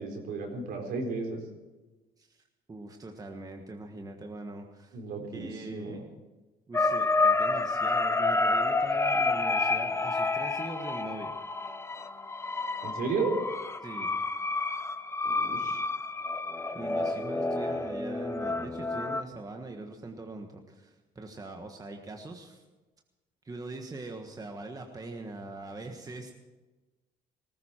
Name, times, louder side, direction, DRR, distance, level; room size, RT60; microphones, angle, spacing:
voice 1, 0.0-1.4 4.9-5.9 12.8-13.3 15.2-15.8, right 4 dB, 65° right, 1 dB, 4.1 m, -34 dB
voice 2, 2.7-6.1 6.7-11.3 13.8-14.1 16.7-22.6 23.4-26.3, right 2 dB, 20° right, 3 dB, 1.4 m, -42 dB
sound 1, 6.7-19.2, left 3 dB, 15° left, 0.7 m, -29 dB
19.0 x 15.0 x 4.5 m, 1.2 s
cardioid pair, 110°, 17 cm